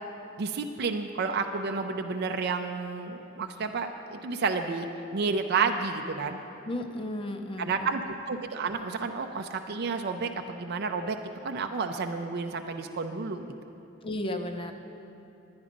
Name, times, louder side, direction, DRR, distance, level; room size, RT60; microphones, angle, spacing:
voice 1, 0.4-4.9 5.1-6.4 7.6-11.2 11.4-13.5, right 4 dB, 50° right, 5 dB, 0.5 m, -31 dB
voice 2, 6.6-7.9 14.0-14.7, left 1 dB, 25° left, 6 dB, 0.6 m, -34 dB
11.0 x 9.6 x 5.1 m, 2.8 s
head